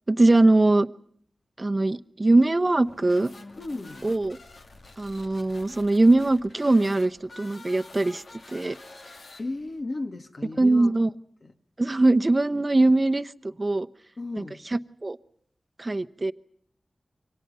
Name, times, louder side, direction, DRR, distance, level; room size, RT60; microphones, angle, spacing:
voice 1, 0.1-0.9 1.6-3.3 4.0-4.4 5.0-8.2 8.5-8.8 10.6-11.1 11.8-13.3 13.6-13.9 14.4-14.5 14.7-15.2 15.8-16.3, right 2 dB, 35° right, 10 dB, 1.0 m, -21 dB
sound 1, 2.8-9.8, left 2 dB, 80° left, 2.7 m, -48 dB
voice 2, 3.6-4.1 9.4-11.0 11.4-11.5 14.2-14.6, left 2 dB, 55° left, 7 dB, 2.1 m, -35 dB
29.0 x 25.0 x 5.6 m, 0.62 s
wide cardioid pair, 80°, 0 cm